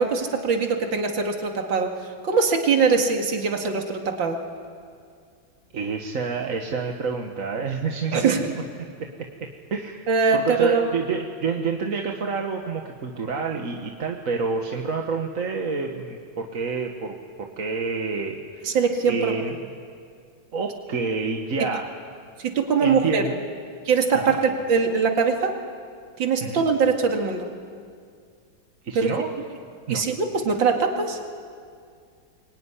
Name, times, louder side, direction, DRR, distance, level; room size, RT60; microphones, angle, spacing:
voice 1, 0.0-4.4 8.1-8.4 10.1-10.9 18.6-19.3 22.4-23.2 23.8-25.5 26.2-27.5 28.9-29.1 29.9-31.2, right 5 dB, 75° right, 3 dB, 2.9 m, -22 dB
voice 2, 5.7-8.4 8.8-18.8 19.1-19.6 20.5-21.9 22.8-23.4 24.1-24.4 26.4-26.6 28.8-29.3 29.9-30.0, right 4 dB, 45° right, 2 dB, 1.7 m, -28 dB
24.0 x 23.5 x 9.9 m, 2.2 s
omnidirectional pair, 2.1 m